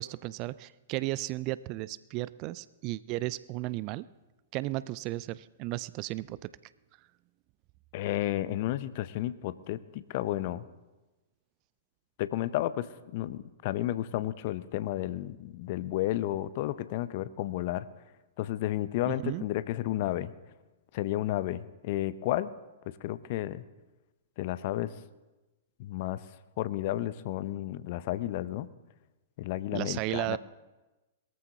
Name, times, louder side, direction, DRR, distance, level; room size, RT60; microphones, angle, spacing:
voice 1, 0.0-4.1 4.5-6.5 19.1-19.5 29.7-30.4, right 18 dB, 40° right, 19 dB, 0.3 m, -34 dB
voice 2, 7.9-10.7 12.2-17.9 18.4-20.3 20.9-22.5 23.0-23.6 24.4-24.9 25.8-26.2 26.6-28.7 29.4-30.4, left 14 dB, 45° left, 16 dB, 0.6 m, -32 dB
21.5 x 14.0 x 2.8 m, 1.1 s
figure-of-eight pair, 105°, 0 cm